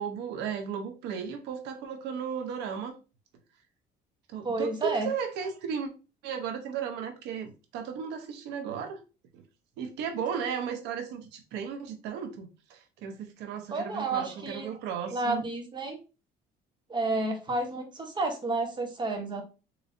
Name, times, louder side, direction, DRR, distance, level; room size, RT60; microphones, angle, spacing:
voice 1, 0.0-2.9 4.3-5.9 6.2-9.0 9.3-9.4 9.8-15.4, right 7 dB, 90° right, 0.9 m, -35 dB
voice 2, 4.4-5.1 13.7-14.7 15.1-16.0 16.9-19.4, right 2 dB, 25° right, 1.1 m, -30 dB
4.0 x 3.1 x 2.6 m
cardioid pair, 110°, 17 cm